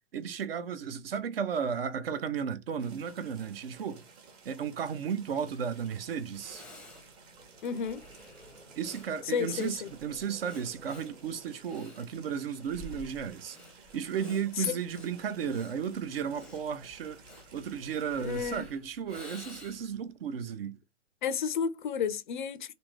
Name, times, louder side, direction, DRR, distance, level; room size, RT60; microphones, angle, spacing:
voice 1, 0.1-4.0 4.4-6.6 8.8-13.6 13.9-17.2 17.5-20.8, right 7 dB, 50° right, 0.7 m, -34 dB
sound 1, 2.8-18.5, right 4 dB, 25° right, 0.9 m, -55 dB
Breathing, 5.9-6.0 6.3-20.0, left 1 dB, ahead, 0.7 m, -51 dB
Conversation / Crowd, 7.3-12.6, right 1 dB, 85° right, 1.4 m, -56 dB
voice 2, 7.6-8.0 9.3-9.9 14.6-14.8 18.2-18.6 21.2-22.7, left 7 dB, 40° left, 0.5 m, -32 dB
3.4 x 2.6 x 3.2 m
figure-of-eight pair, 115°, 36 cm